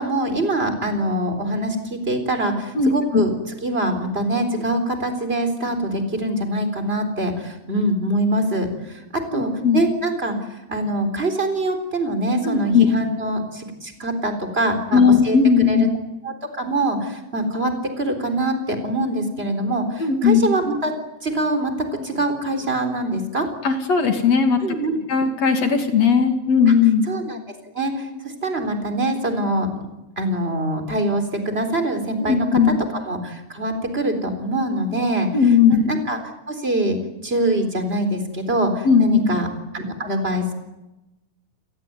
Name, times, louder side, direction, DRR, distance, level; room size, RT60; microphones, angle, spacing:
voice 1, 0.0-15.4 15.7-15.8 16.2-20.9 21.2-21.7 22.0-23.5 24.6-25.0 27.1-27.4 27.7-29.7 30.2-35.3 35.7-36.2 36.5-37.0 37.2-39.5 39.7-40.5, right 1 dB, 15° right, 7 dB, 3.7 m, -24 dB
voice 2, 2.7-3.2 9.3-9.8 12.4-12.9 14.9-15.9 20.0-20.5 23.6-24.6 25.1-27.1 32.2-32.8 35.3-35.8 38.8-39.2, left 6 dB, 45° left, 6 dB, 3.2 m, -17 dB
29.5 x 18.5 x 9.4 m, 1.0 s
omnidirectional pair, 4.4 m